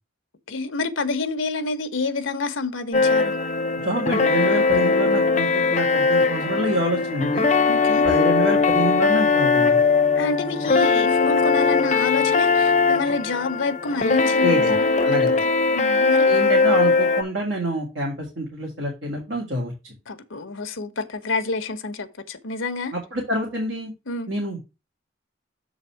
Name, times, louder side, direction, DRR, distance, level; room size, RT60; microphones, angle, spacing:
voice 1, 0.5-3.4 7.7-8.1 10.1-16.3 20.1-22.9 24.1-24.3, left 3 dB, 75° left, 1.0 m, -28 dB
sound 1, 2.9-17.2, left 4 dB, 35° left, 0.7 m, -20 dB
voice 2, 3.8-7.5 8.0-9.8 14.4-14.8 15.0-15.4 16.3-20.0 22.9-23.9 24.3-24.6, right 1 dB, 65° right, 1.9 m, -27 dB
7.0 x 4.0 x 5.7 m
head